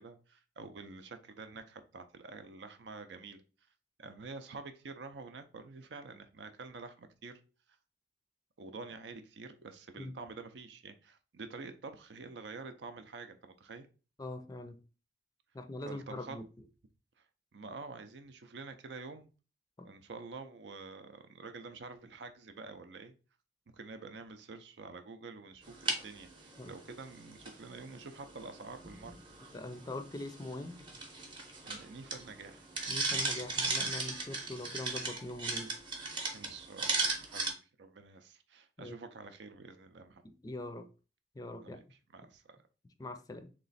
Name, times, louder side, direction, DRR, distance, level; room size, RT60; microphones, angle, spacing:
voice 1, 0.0-3.4 4.0-7.3 8.6-13.9 15.8-16.4 17.2-17.3 17.5-19.3 19.8-23.1 23.7-29.2 31.6-32.7 36.3-40.2 41.6-42.6, right 4 dB, 85° right, 0.5 m, -48 dB
voice 2, 14.2-14.8 15.5-16.4 19.8-19.9 26.6-26.7 29.5-30.9 32.9-35.7 38.8-39.0 40.2-40.9 41.4-41.8 43.0-43.5, left 2 dB, 20° left, 0.4 m, -42 dB
sound 1, 25.6-37.5, right 3 dB, 25° right, 0.7 m, -38 dB
3.2 x 3.0 x 4.0 m
head